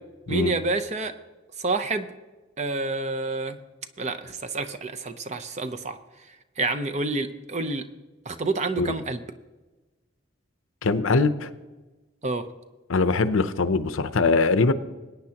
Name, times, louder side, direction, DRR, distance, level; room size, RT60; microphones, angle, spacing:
voice 1, 0.3-1.1 1.6-2.1 2.6-3.6 4.0-6.0 6.6-7.8 8.3-9.2 12.2-12.5, right 3 dB, 35° right, 9 dB, 0.7 m, -28 dB
voice 2, 10.8-11.5 12.9-14.7, left 3 dB, 80° left, 12 dB, 0.7 m, -22 dB
21.0 x 9.5 x 2.9 m, 1.2 s
head